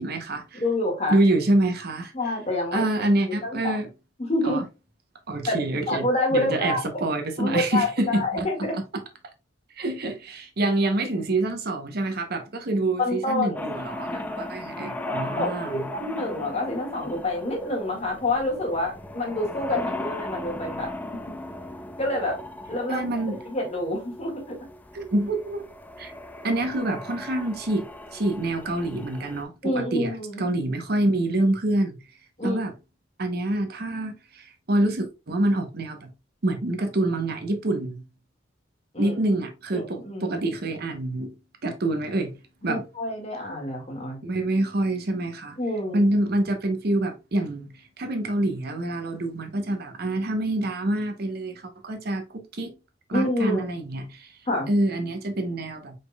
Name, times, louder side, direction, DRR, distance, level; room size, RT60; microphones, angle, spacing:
voice 1, 0.0-0.6 1.1-2.1 2.7-3.9 4.4-4.6 5.3-6.1 6.3-8.5 8.7-8.8 9.8-15.9 22.9-23.4 24.9-25.7 26.0-26.1 26.4-30.1 30.4-32.0 32.4-32.7 33.2-36.1 36.4-38.0 39.0-41.3 41.6-42.3 42.6-42.8 44.2-45.6 45.9-47.7 48.0-52.7 53.1-54.4 54.7-55.9, right 1 dB, 55° right, 0.8 m, -26 dB
voice 2, 0.5-1.2 2.1-2.8 3.4-3.8 4.2-4.6 5.5-5.6 5.9-7.0 7.4-8.8 13.0-13.7 15.1-20.9 22.0-22.4 22.7-23.0 23.5-24.6 29.6-30.5 32.4-32.6 38.9-39.2 39.7-40.4 42.6-44.2 45.6-46.1 53.1-53.6 54.5-54.7, left 1 dB, 35° left, 1.8 m, -27 dB
sound 1, 13.6-29.4, left 1 dB, 10° left, 0.4 m, -37 dB
5.0 x 4.3 x 2.2 m
head